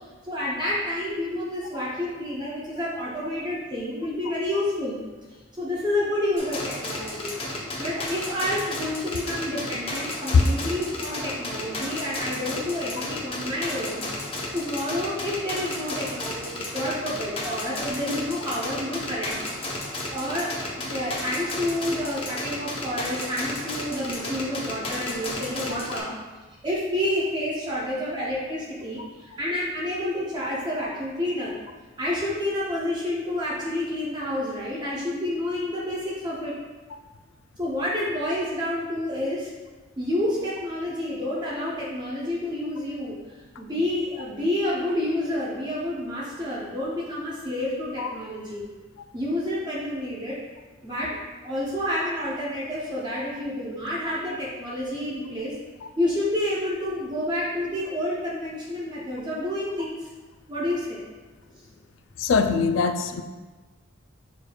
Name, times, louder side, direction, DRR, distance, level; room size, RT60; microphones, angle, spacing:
voice 1, 0.2-5.0 5.6-14.0 14.5-19.4 20.1-26.1 26.6-31.5 32.0-36.6 37.6-39.5 40.0-48.7 49.1-50.4 50.8-55.5 56.0-60.1 60.5-61.0 61.5-61.6, left 1 dB, 20° right, -6 dB, 0.6 m, -29 dB
sound 1, 6.4-26.0, left 1 dB, 25° left, 0.6 m, -33 dB
voice 2, 62.2-63.2, left 5 dB, 65° left, 7 dB, 0.3 m, -21 dB
6.3 x 3.3 x 2.2 m, 1.3 s
head